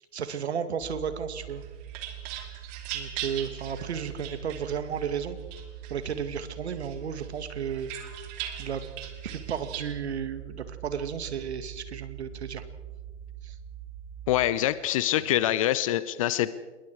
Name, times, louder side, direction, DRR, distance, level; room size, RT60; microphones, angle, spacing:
voice 1, 0.1-1.6 2.9-5.4 5.9-7.9 8.6-8.8 9.2-12.6 13.4-13.5, right 7 dB, 60° right, 10 dB, 2.2 m, -33 dB
sound 1, 0.8-14.5, right 10 dB, 15° right, 3.1 m, -43 dB
sound 2, 1.5-5.1 5.5-6.4 6.8-9.9, right 11 dB, 30° right, 2.8 m, -40 dB
voice 2, 14.3-16.5, left 13 dB, 30° left, 16 dB, 0.6 m, -25 dB
26.5 x 22.0 x 4.7 m, 1.3 s
figure-of-eight pair, 125°, 37 cm